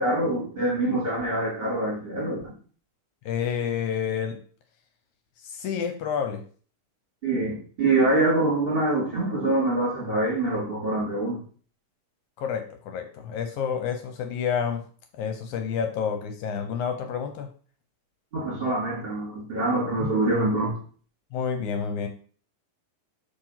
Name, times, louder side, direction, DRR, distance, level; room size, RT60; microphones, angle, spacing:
voice 1, 0.0-2.5 7.2-11.4 18.3-20.8, right 2 dB, 20° right, -2 dB, 1.6 m, -25 dB
voice 2, 3.3-4.4 5.4-6.4 12.4-14.8 15.2-17.5 21.3-22.1, left 7 dB, 75° left, 6 dB, 1.9 m, -29 dB
5.9 x 4.3 x 5.7 m, 0.43 s
omnidirectional pair, 4.0 m